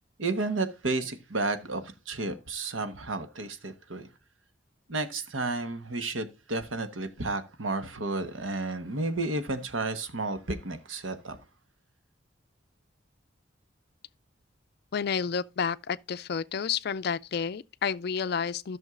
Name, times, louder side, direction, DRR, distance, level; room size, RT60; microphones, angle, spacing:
voice 1, 0.2-4.1 4.9-11.4, right 2 dB, 85° right, 1.1 m, -32 dB
voice 2, 14.9-18.8, left 6 dB, 55° left, 0.4 m, -30 dB
14.0 x 6.3 x 2.4 m
head